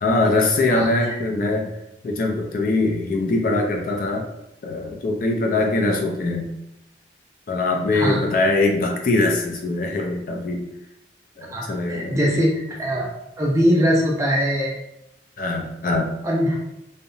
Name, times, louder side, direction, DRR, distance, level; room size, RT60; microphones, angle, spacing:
voice 1, 0.0-1.8 2.0-4.3 4.6-6.5 7.5-10.6 11.4-12.4 15.4-16.2, left 2 dB, 50° left, 1 dB, 0.4 m, -22 dB
voice 2, 11.5-13.1 13.4-14.8 16.2-16.6, equal, 15° right, -3 dB, 0.4 m, -21 dB
2.7 x 2.1 x 2.5 m, 0.87 s
head